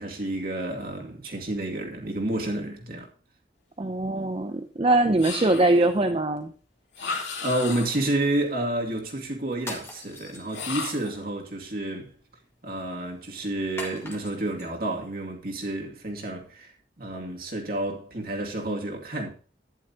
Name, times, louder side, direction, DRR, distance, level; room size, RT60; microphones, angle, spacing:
voice 1, 0.0-3.1 7.0-12.1 12.6-16.7 17.0-19.3, right 1 dB, 55° right, 2.4 m, -30 dB
voice 2, 3.8-6.5, right 2 dB, 30° right, 0.6 m, -22 dB
sound 1, 5.2-6.0 6.9-8.2 10.5-11.2, left 5 dB, 85° left, 2.6 m, -34 dB
sound 2, 9.6-11.0 13.8-14.7, left 2 dB, 15° left, 1.8 m, -41 dB
12.0 x 10.5 x 2.9 m
head